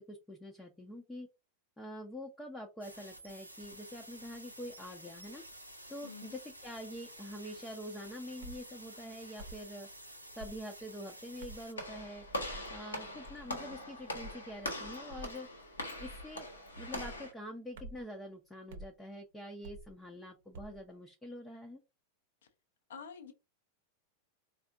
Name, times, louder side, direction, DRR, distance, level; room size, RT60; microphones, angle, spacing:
voice 1, 0.1-1.3 1.8-5.4 5.9-9.9 10.4-12.2 12.7-15.5 16.0-16.5 16.8-21.8, equal, 10° left, 0.7 m, -45 dB
sound 1, 2.8-11.7, right 1 dB, 90° right, 0.7 m, -51 dB
voice 2, 6.0-6.4 22.9-23.3, left 6 dB, 60° left, 0.6 m, -47 dB
sound 2, 8.4-8.6 9.4-9.7 10.4-10.6 11.4-11.7 12.4-12.7 13.2-13.5 14.1-14.4 15.1-15.4 16.0-16.4 16.9-17.2 17.8-18.1 18.7-18.9 19.6-19.9 20.5-20.8, right 1 dB, 55° right, 0.8 m, -48 dB
Walk footsteps / Slam, 11.8-17.3, left 1 dB, 75° left, 1.0 m, -42 dB
4.2 x 2.4 x 2.6 m
figure-of-eight pair, 90°, 0 cm